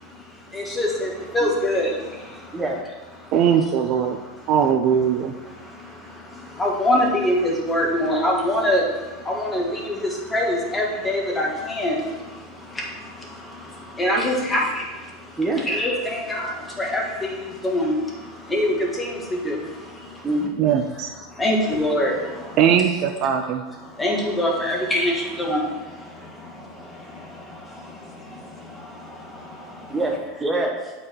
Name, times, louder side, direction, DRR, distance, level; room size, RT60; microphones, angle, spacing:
voice 1, 0.5-1.1 1.3-1.9 6.6-8.8 9.3-9.9 10.3-11.9 14.0-14.6 15.7-16.5 16.8-17.3 17.6-17.9 18.5-19.1 19.4-19.6 21.4-22.1 24.0-25.6, left 1 dB, 10° left, -1 dB, 1.7 m, -22 dB
voice 2, 3.3-4.2 4.5-5.3 20.6-21.1 22.6-23.6, right 8 dB, 50° right, 6 dB, 0.5 m, -20 dB
voice 3, 29.9-30.9, right 2 dB, 15° right, 1 dB, 1.0 m, -25 dB
8.4 x 4.8 x 4.6 m, 1.2 s
supercardioid pair, 130°, 0 cm